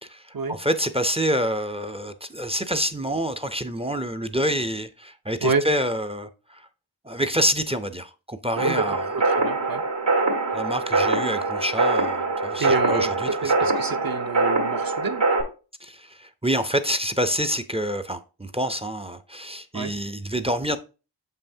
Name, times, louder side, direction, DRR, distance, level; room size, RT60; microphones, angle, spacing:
voice 1, 0.0-6.7 7.0-9.0 10.5-13.5 15.8-20.8, equal, 15° right, 0.5 m, -27 dB
voice 2, 8.6-9.8 12.6-15.2 19.7-19.9, right 4 dB, 50° right, 0.7 m, -27 dB
sound 1, 8.6-15.4, right 3 dB, 75° right, 1.7 m, -24 dB
7.0 x 5.5 x 2.7 m
wide cardioid pair, 70°, 44 cm